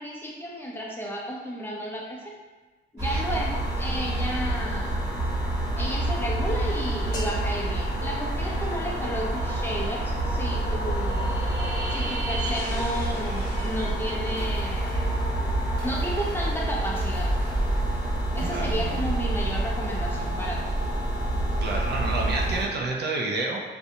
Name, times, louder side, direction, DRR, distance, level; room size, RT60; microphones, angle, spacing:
voice 1, 0.0-2.3 2.9-5.1 5.7-11.4 11.9-15.2 15.8-17.3 18.3-20.6, equal, 10° left, -3 dB, 0.5 m, -33 dB
sound 1, 3.0-22.7, right 1 dB, 20° right, 1.1 m, -27 dB
sound 2, 7.1-9.1, left 2 dB, 85° left, 0.7 m, -43 dB
sound 3, 10.9-14.0 14.4-19.1, right 2 dB, 90° right, 0.8 m, -40 dB
voice 2, 21.6-23.6, right 2 dB, 55° right, -1 dB, 0.5 m, -29 dB
2.5 x 2.1 x 2.8 m, 1.2 s
cardioid pair, 90°, 20 cm